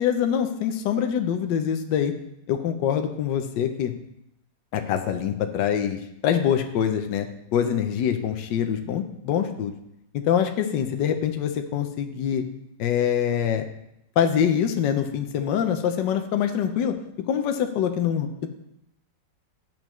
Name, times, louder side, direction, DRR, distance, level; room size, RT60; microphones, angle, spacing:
voice 1, 0.0-2.1 2.5-3.9 4.7-7.3 7.5-9.7 10.1-12.4 12.8-13.7 14.2-17.0 17.3-18.5, left 9 dB, 80° left, 6 dB, 1.4 m, -24 dB
10.5 x 7.8 x 3.0 m, 0.80 s
omnidirectional pair, 2.0 m